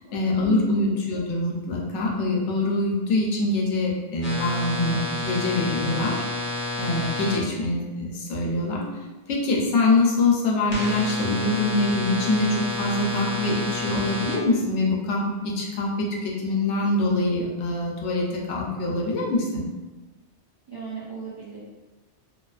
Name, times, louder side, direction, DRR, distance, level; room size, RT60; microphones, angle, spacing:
voice 1, 0.1-6.2 6.8-8.9 9.3-19.6, left 2 dB, 85° left, -2 dB, 0.9 m, -24 dB
sound 1, 4.2-7.4 10.7-14.4, left 2 dB, 40° left, 0.5 m, -30 dB
voice 2, 20.7-21.6, right 5 dB, 35° right, -9 dB, 0.4 m, -37 dB
2.3 x 2.3 x 2.3 m, 1.2 s
omnidirectional pair, 1.2 m